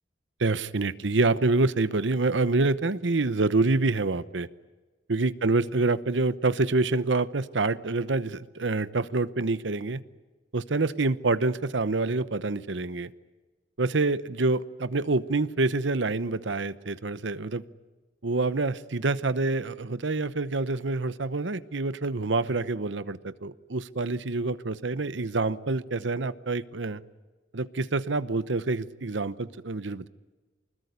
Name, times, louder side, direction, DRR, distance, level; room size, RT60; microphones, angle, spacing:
voice 1, 0.4-4.5 5.1-10.0 10.5-13.1 13.8-17.6 18.2-27.0 27.5-30.1, right 3 dB, 85° right, 16 dB, 0.9 m, -27 dB
24.5 x 20.5 x 9.6 m, 1.3 s
head